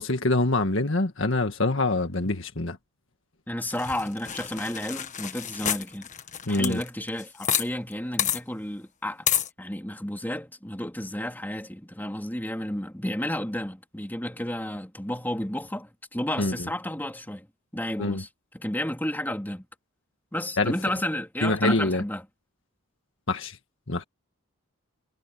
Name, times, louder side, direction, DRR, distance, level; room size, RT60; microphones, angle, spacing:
voice 1, 0.0-2.8 6.5-6.8 16.4-16.6 18.0-18.2 20.6-20.7 21.4-22.0 23.3-23.6 23.9-24.0, left 2 dB, 60° left, 1.8 m, -25 dB
voice 2, 3.5-6.1 6.4-17.5 17.7-18.3 18.5-19.7 20.3-22.2, left 1 dB, 10° left, 3.2 m, -32 dB
sound 1, 3.7-7.7 7.9-8.0 8.2-8.4 9.3-9.5, left 9 dB, 35° left, 1.6 m, -29 dB
head